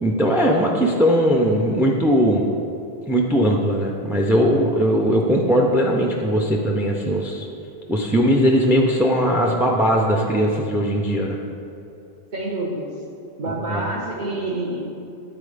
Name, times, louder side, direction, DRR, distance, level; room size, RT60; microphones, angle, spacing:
voice 1, 0.0-2.4 3.1-7.5 7.9-11.4 13.7-13.9, equal, 5° right, 0 dB, 0.3 m, -19 dB
voice 2, 12.3-13.0 13.4-14.9, right 2 dB, 50° right, -3 dB, 1.0 m, -27 dB
10.0 x 4.1 x 5.0 m, 2.7 s
omnidirectional pair, 1.1 m